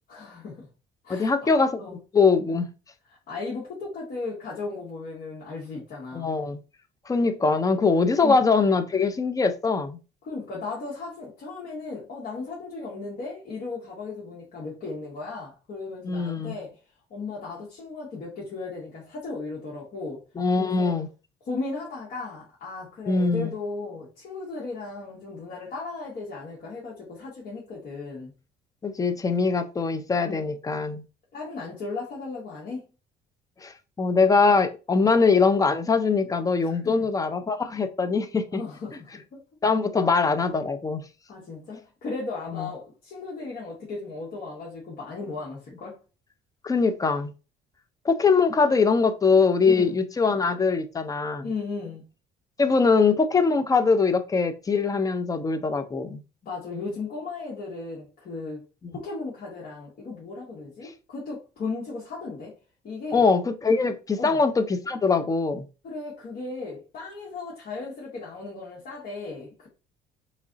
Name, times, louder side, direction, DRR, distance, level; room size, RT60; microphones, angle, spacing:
voice 1, 0.1-0.7 1.0-1.5 1.8-2.0 3.3-6.3 8.2-8.4 10.2-16.7 17.1-20.2 20.6-21.0 21.5-28.3 30.2-30.5 31.3-32.8 35.0-35.1 36.6-37.1 38.5-39.4 40.0-40.1 41.3-46.0 49.6-49.9 51.4-52.0 56.4-58.6 58.9-62.5 62.8-63.2 64.2-64.4 65.8-69.7, left 3 dB, 55° left, 1.6 m, -36 dB
voice 2, 1.1-1.8 2.1-2.7 6.1-6.6 7.1-10.0 16.0-16.5 20.4-21.1 23.1-23.5 28.8-31.0 33.6-38.6 39.6-41.0 42.5-42.7 46.6-47.3 48.0-51.5 52.6-56.2 63.1-65.7, left 4 dB, 20° left, 0.5 m, -22 dB
3.6 x 3.1 x 3.9 m
cardioid pair, 110°, 17 cm